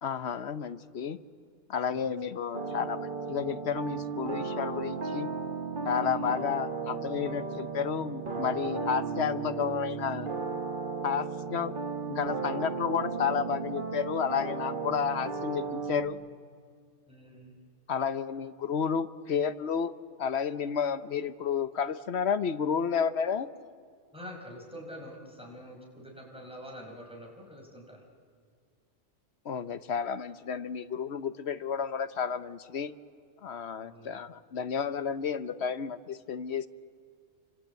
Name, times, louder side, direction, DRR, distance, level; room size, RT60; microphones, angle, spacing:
voice 1, 0.0-1.2 1.7-5.3 5.8-10.3 11.0-11.7 12.1-16.2 17.9-19.9 20.2-23.5 29.4-32.9 33.4-36.7, left 7 dB, 65° left, 13 dB, 1.1 m, -31 dB
sound 1, 2.5-16.1, right 4 dB, 45° right, 1.7 m, -35 dB
voice 2, 5.9-6.4 17.1-17.6 24.1-28.0 33.8-34.2, equal, 5° right, 0 dB, 4.9 m, -46 dB
28.5 x 25.5 x 8.2 m, 2.2 s
omnidirectional pair, 1.2 m